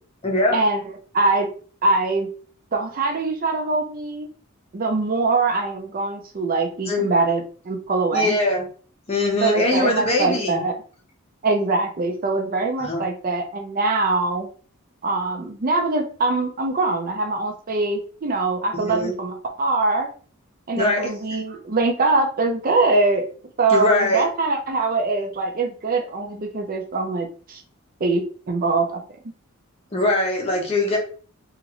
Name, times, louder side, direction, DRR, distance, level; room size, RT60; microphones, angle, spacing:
voice 1, 0.2-0.6 6.9-7.0 8.1-8.6 9.1-10.6 12.8-13.0 18.7-19.1 20.7-21.1 23.7-24.3 29.9-31.0, left 2 dB, 30° left, 0 dB, 0.8 m, -22 dB
voice 2, 1.1-1.5 1.8-2.3 2.7-4.3 4.7-8.4 9.4-10.7 11.4-14.5 15.0-20.1 20.7-23.3 23.6-27.6 28.0-29.0, right 3 dB, 40° right, 4 dB, 0.5 m, -23 dB
3.0 x 2.4 x 2.9 m, 0.42 s
head